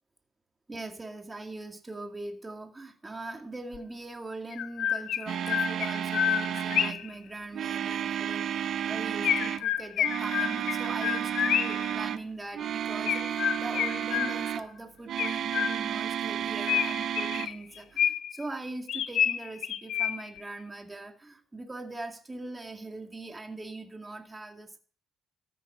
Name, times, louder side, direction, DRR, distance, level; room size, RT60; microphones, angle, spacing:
voice 1, 0.7-24.8, right 2 dB, 20° right, 4 dB, 2.4 m, -41 dB
Chirp tweet, 3.7-3.8 4.5-7.1 9.2-11.9 13.1-14.6 15.2-16.1 16.7-18.4 18.9-20.4, left 10 dB, 75° left, 0.7 m, -29 dB
sound 1, 5.3-7.0 7.5-9.6 10.0-12.3 12.5-14.6 15.1-17.5, right 9 dB, 65° right, 0.7 m, -32 dB
14.0 x 8.9 x 5.5 m, 0.43 s
cardioid pair, 90°, 0 cm